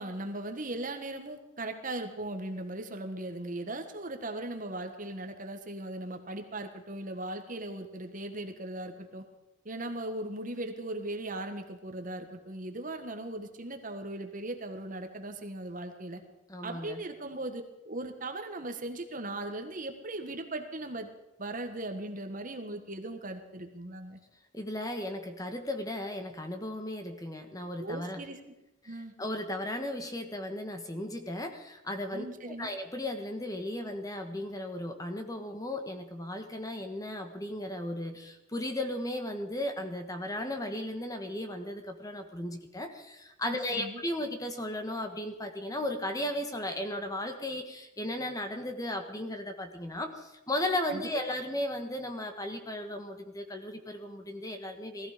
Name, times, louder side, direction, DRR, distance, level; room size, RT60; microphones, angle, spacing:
voice 1, 0.0-9.2 9.6-16.2 16.6-21.1 21.4-24.2 27.8-28.5 28.9-29.1 32.1-32.7 43.4-44.0 50.9-51.1, right 1 dB, 40° right, 6 dB, 1.6 m, -38 dB
voice 2, 16.5-17.0 24.5-28.2 29.2-55.1, left 1 dB, 20° left, 5 dB, 1.4 m, -35 dB
19.0 x 14.5 x 5.2 m, 0.95 s
head